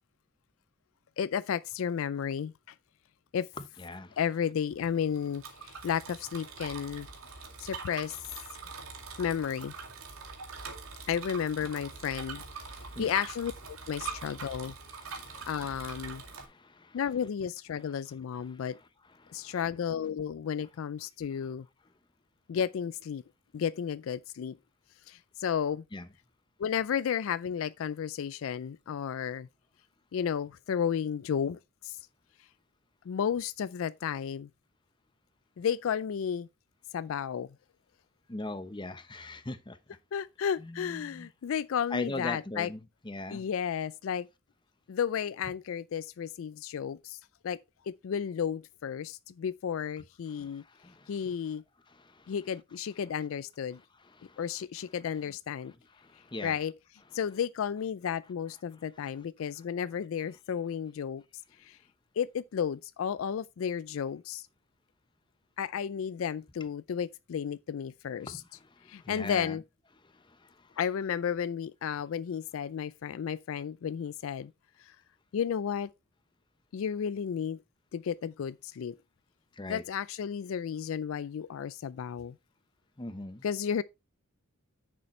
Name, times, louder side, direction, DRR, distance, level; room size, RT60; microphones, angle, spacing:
voice 1, 1.2-2.7 3.3-3.5 4.2-7.1 7.6-8.2 9.2-9.7 11.1-14.8 15.5-16.2 16.9-18.8 19.3-21.7 22.5-23.2 23.5-24.6 25.1-25.8 26.6-29.5 30.1-32.0 33.1-34.5 35.6-36.5 36.9-37.6 40.1-42.7 43.3-44.3 44.9-47.6 47.8-50.6 51.1-51.6 52.3-53.8 54.4-55.7 56.4-56.7 57.1-61.2 61.6-61.8 62.2-64.5 65.6-68.4 68.9-69.6 70.8-74.5 74.8-74.9 75.3-75.9 76.7-77.6 77.9-79.0 79.7-82.4 83.4-83.8, left 8 dB, 75° left, 0.4 m, -33 dB
voice 2, 3.8-4.2 12.6-13.1 15.0-15.5 16.2-17.0 18.5-18.6 19.2-19.6 25.9-26.0 38.3-40.0 40.6-41.3 41.9-43.5 50.3-51.3 51.9-52.3 54.0-54.4 56.0-56.6 68.3-69.6 70.1-70.8 79.6-79.8 83.0-83.4, left 2 dB, 20° left, 0.8 m, -41 dB
Bicycle, 4.7-16.4, right 5 dB, 85° right, 2.3 m, -43 dB
9.9 x 6.8 x 3.2 m
head